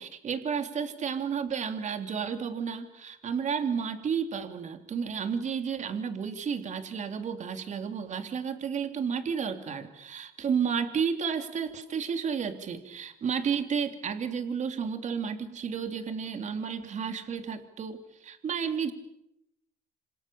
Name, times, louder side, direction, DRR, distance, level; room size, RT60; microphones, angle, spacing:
voice 1, 0.0-18.9, right 6 dB, 45° right, 7 dB, 3.1 m, -32 dB
27.5 x 26.5 x 7.1 m, 0.84 s
cardioid pair, 110°, 17 cm